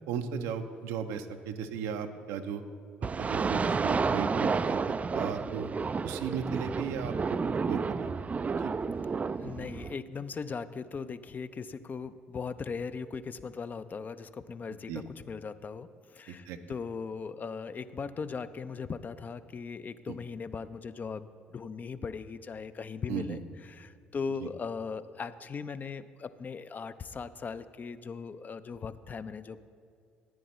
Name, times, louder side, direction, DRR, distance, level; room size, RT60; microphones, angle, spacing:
voice 1, 0.1-2.6 3.2-4.8 5.1-5.7 6.0-7.4 7.7-8.1 8.5-8.7 14.9-15.0 16.3-16.6 20.1-20.2 23.1-23.4 24.4-24.5, right 7 dB, 70° right, 8 dB, 0.6 m, -36 dB
sound 1, 3.0-10.0, right 5 dB, 30° right, 0.3 m, -31 dB
voice 2, 9.4-29.6, left 5 dB, 35° left, 13 dB, 0.5 m, -39 dB
14.0 x 9.9 x 3.1 m, 2.3 s
hypercardioid pair, 50°, 5 cm